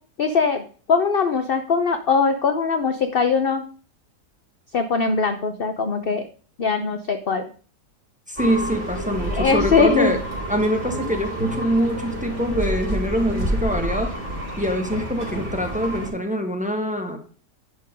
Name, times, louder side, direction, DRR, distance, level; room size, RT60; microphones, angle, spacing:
voice 1, 0.2-3.6 4.7-6.2 6.6-7.5 9.3-10.1, left 5 dB, 50° left, 8 dB, 0.7 m, -21 dB
voice 2, 8.3-10.2 10.5-14.2 14.6-17.2, equal, 5° right, 4 dB, 1.2 m, -24 dB
sound 1, 8.4-16.1, right 1 dB, 45° right, 3.4 m, -28 dB
11.0 x 4.5 x 5.1 m, 0.42 s
omnidirectional pair, 1.7 m